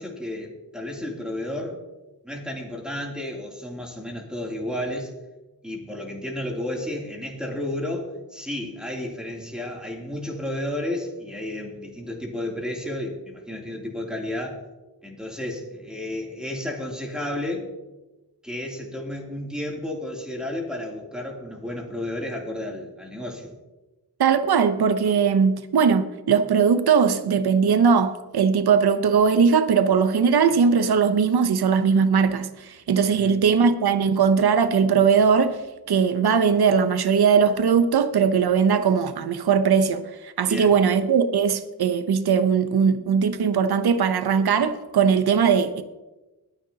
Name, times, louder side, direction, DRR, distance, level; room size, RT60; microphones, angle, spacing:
voice 1, 0.0-1.8 2.2-5.1 5.6-14.6 15.0-17.7 18.4-23.5 33.2-33.4 40.4-40.7, left 1 dB, ahead, 2.8 m, -32 dB
voice 2, 24.2-35.6 35.9-45.8, right 6 dB, 70° right, 0.8 m, -20 dB
21.0 x 10.0 x 2.8 m
wide cardioid pair, 75°, 39 cm